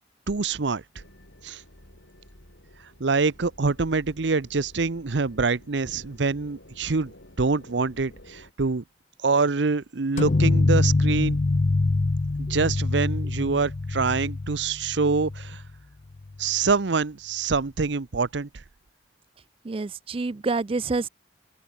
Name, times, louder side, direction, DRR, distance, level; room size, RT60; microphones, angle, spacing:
voice 1, 0.3-0.8 1.4-1.6 3.0-8.8 9.2-11.4 12.4-15.6 16.4-18.6, right 4 dB, 75° right, 0.8 m, -25 dB
sound 1, 0.9-8.5, left 1 dB, 80° left, 5.5 m, -51 dB
sound 2, 10.2-15.7, left 2 dB, 40° left, 0.5 m, -24 dB
voice 2, 19.6-21.1, right 3 dB, 30° right, 0.4 m, -27 dB
open air
head